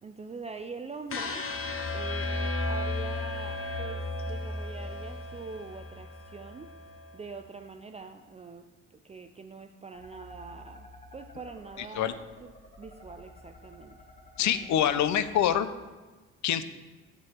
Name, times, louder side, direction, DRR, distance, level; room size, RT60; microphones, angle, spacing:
voice 1, 0.0-6.7 7.1-14.0 14.4-14.7, right 4 dB, 20° right, 6 dB, 0.4 m, -44 dB
sound 1, 1.1-7.2, left 2 dB, 45° left, 1.0 m, -34 dB
sound 2, 9.9-15.6, left 1 dB, 25° left, 1.8 m, -52 dB
voice 2, 14.4-15.7 16.4-16.6, left 10 dB, 70° left, 13 dB, 0.6 m, -25 dB
7.1 x 6.9 x 4.5 m, 1.3 s
cardioid pair, 90°, 30 cm